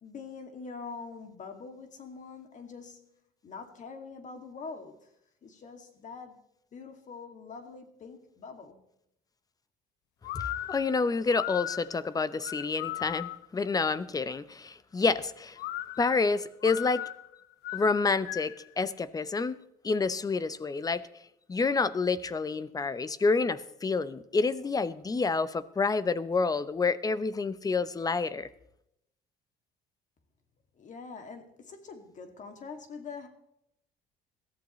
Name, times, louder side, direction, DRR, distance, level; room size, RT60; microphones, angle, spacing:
voice 1, 0.0-3.1 3.4-5.1 5.4-6.4 6.7-8.8 30.8-33.3, left 5 dB, 45° left, 2.4 m, -44 dB
sound 1, 10.2-13.6 15.6-18.7, left 14 dB, 80° left, 0.5 m, -38 dB
voice 2, 10.3-15.6 16.0-17.0 17.7-19.6 19.8-21.0 21.5-28.5, left 4 dB, 20° left, 0.8 m, -28 dB
21.5 x 14.5 x 3.2 m
cardioid pair, 110°, 17 cm